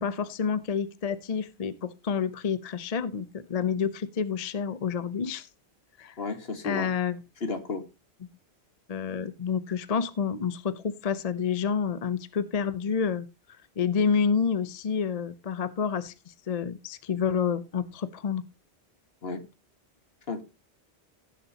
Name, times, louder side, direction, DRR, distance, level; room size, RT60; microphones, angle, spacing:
voice 1, 0.0-5.5 6.0-6.1 6.6-7.2 8.9-13.3 13.8-18.4, left 6 dB, 40° left, 14 dB, 0.7 m, -29 dB
voice 2, 6.2-6.9 7.4-7.8 19.2-19.4 20.3-20.4, left 3 dB, 65° left, 9 dB, 1.7 m, -32 dB
16.5 x 7.0 x 2.8 m, 0.26 s
omnidirectional pair, 1.1 m